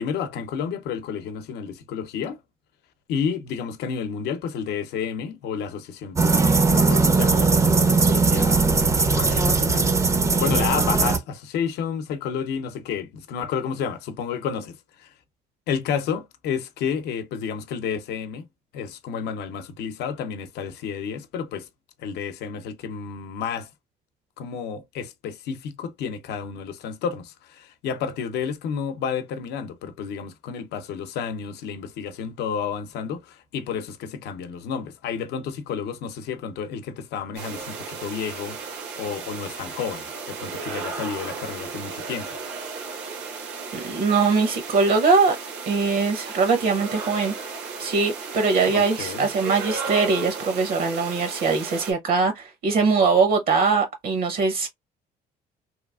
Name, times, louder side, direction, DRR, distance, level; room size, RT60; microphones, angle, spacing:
voice 1, 0.0-2.4 3.1-9.9 10.3-15.1 15.7-18.5 18.7-21.7 22.0-23.7 24.4-42.4 48.7-49.3, left 7 dB, 80° left, 0.7 m, -31 dB
sound 1, 6.2-11.2, right 4 dB, 20° right, 0.4 m, -19 dB
sound 2, 37.3-51.9, right 5 dB, 85° right, 1.1 m, -35 dB
voice 2, 43.7-45.4 45.7-47.3 47.8-54.7, right 4 dB, 60° right, 0.8 m, -21 dB
3.1 x 2.3 x 2.3 m
cardioid pair, 110°, 17 cm